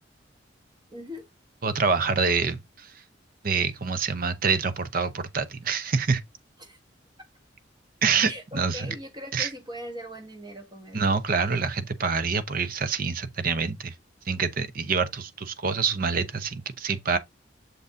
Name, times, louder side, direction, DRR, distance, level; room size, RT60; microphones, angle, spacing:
voice 1, 0.9-1.3 6.6-6.8 8.3-11.2, equal, 25° right, 1.3 m, -40 dB
voice 2, 1.6-2.9 3.4-6.2 8.0-8.9 9.3-9.5 10.9-13.9 14.3-17.2, right 5 dB, 50° right, 0.7 m, -26 dB
6.9 x 4.0 x 3.6 m
head